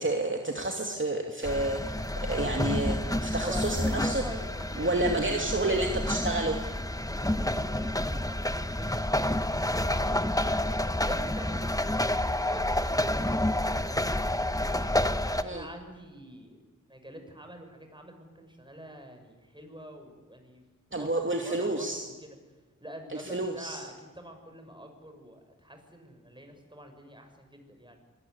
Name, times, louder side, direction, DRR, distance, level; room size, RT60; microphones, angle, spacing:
voice 1, 0.0-4.2 4.8-6.6 15.4-15.7 20.9-22.0 23.3-23.8, right 2 dB, 40° right, 2 dB, 2.7 m, -30 dB
sound 1, 1.4-15.4, left 1 dB, 10° left, 1.2 m, -29 dB
voice 2, 3.4-6.3 7.0-8.4 8.7-14.6 15.2-16.6 16.9-20.6 20.9-22.4 22.8-28.0, equal, 15° right, 5 dB, 6.6 m, -45 dB
25.0 x 20.0 x 9.7 m, 1.3 s
wide cardioid pair, 55°, 32 cm